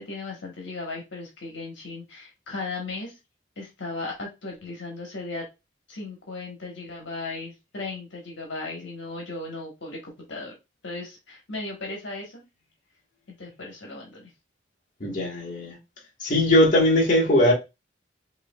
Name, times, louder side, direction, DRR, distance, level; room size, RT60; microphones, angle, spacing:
voice 1, 0.0-3.1 3.6-5.4 5.9-10.5 10.8-12.4 13.4-14.3, left 3 dB, 70° left, 1.2 m, -36 dB
voice 2, 15.0-15.8 16.2-17.5, left 1 dB, 40° left, 1.3 m, -20 dB
4.7 x 2.7 x 2.3 m
head